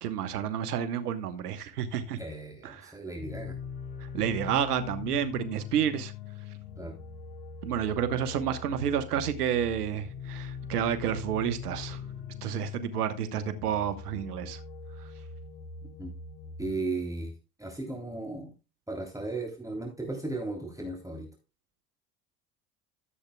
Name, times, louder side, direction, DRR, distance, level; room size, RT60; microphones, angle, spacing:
voice 1, 0.0-2.2 2.6-2.9 4.1-6.1 7.6-12.0 12.4-14.6, right 9 dB, 85° right, 1.3 m, -30 dB
voice 2, 2.2-3.6 6.8-7.0 16.0-16.1 16.6-17.3 17.6-18.5 18.9-21.3, right 2 dB, 5° right, 3.3 m, -36 dB
sound 1, 3.1-16.8, left 5 dB, 90° left, 1.3 m, -42 dB
14.5 x 8.2 x 2.3 m
hypercardioid pair, 70°, 45 cm